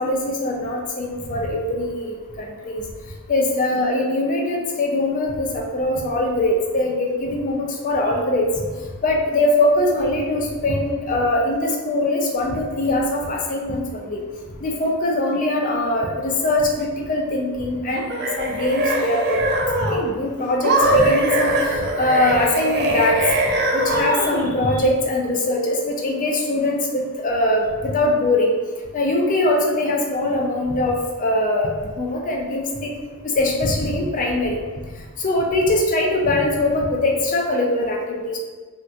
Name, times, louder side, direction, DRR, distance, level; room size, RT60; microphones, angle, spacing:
voice 1, 0.0-2.8 3.3-8.5 9.0-14.2 14.6-23.2 23.7-28.5 28.9-32.9 33.3-34.6 35.2-38.4, left 1 dB, 40° left, -1 dB, 0.4 m, -22 dB
sound 1, 17.9-20.1 20.6-24.5, right 1 dB, 50° right, 0.4 m, -22 dB
3.3 x 2.8 x 2.3 m, 1.4 s
head